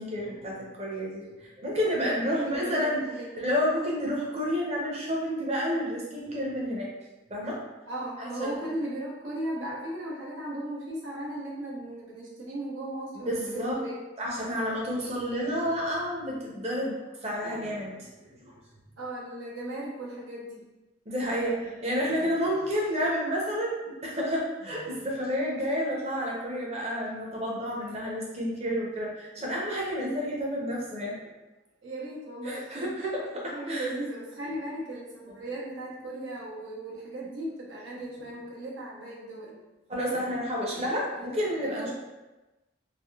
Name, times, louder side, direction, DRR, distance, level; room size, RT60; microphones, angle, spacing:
voice 1, 0.0-3.0 3.4-6.9 7.3-7.6 8.2-8.5 13.2-13.8 14.2-18.5 21.1-31.1 32.4-33.9 39.9-41.9, equal, 35° right, -3 dB, 0.7 m, -30 dB
voice 2, 1.9-3.5 7.9-14.1 19.0-20.6 31.8-33.1 33.3-39.5 41.1-41.3 41.6-41.9, right 1 dB, 85° right, -5 dB, 0.8 m, -37 dB
3.4 x 2.5 x 2.3 m, 1.1 s
head